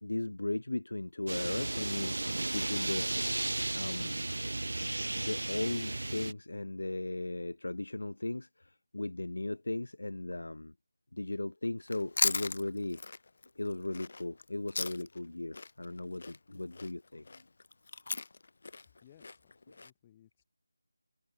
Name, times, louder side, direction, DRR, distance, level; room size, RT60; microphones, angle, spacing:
voice 1, 0.0-2.2 2.5-3.1 3.7-4.2 5.2-10.7 11.1-13.0 13.6-17.4, left 2 dB, 75° left, 0.9 m, -37 dB
sound 1, 1.3-6.3, right 2 dB, 75° right, 2.0 m, -34 dB
Chewing mastication, 11.8-15.3 15.5-19.9, left 3 dB, 40° left, 2.5 m, -37 dB
voice 2, 19.0-20.4, left 11 dB, 10° left, 5.6 m, -62 dB
figure-of-eight pair, 175°, 0 cm